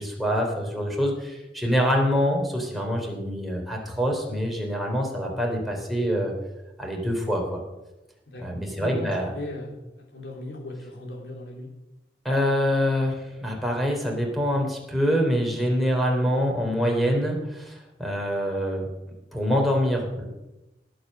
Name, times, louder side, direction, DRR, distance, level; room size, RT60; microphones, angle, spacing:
voice 1, 0.0-6.3 6.8-7.6 8.4-9.3 12.2-18.9 19.3-20.2, equal, ahead, -1 dB, 3.3 m, -25 dB
voice 2, 8.3-11.7, left 1 dB, 70° left, 0 dB, 3.6 m, -37 dB
18.0 x 7.8 x 6.4 m, 0.99 s
head